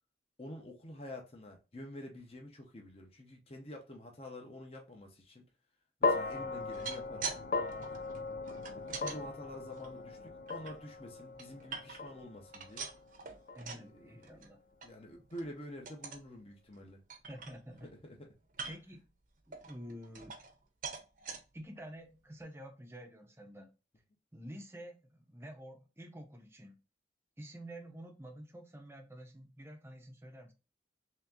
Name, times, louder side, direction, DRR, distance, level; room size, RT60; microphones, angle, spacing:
voice 1, 0.4-5.5 6.0-7.3 8.1-8.4 9.0-12.9 13.7-14.3 14.8-17.0 17.8-18.3, left 1 dB, 35° left, 0.8 m, -48 dB
sound 1, 6.0-14.3, left 3 dB, 50° left, 0.4 m, -38 dB
sound 2, 6.6-7.4 7.7-9.2 9.7-10.7 11.2-12.2 12.5-13.9 14.2-14.5 14.8-14.9 15.3-15.5 15.9-16.3 16.7-16.8 17.1-17.9 18.5-19.0 19.5-20.6 20.8-21.4 22.0-22.1 22.4-22.5, right 5 dB, 45° right, 0.8 m, -44 dB
voice 2, 13.5-14.6 17.1-17.9 18.7-19.1 19.5-20.4 21.5-23.7 24.3-26.8 27.4-30.5, equal, 15° right, 0.7 m, -49 dB
3.4 x 2.9 x 3.5 m
head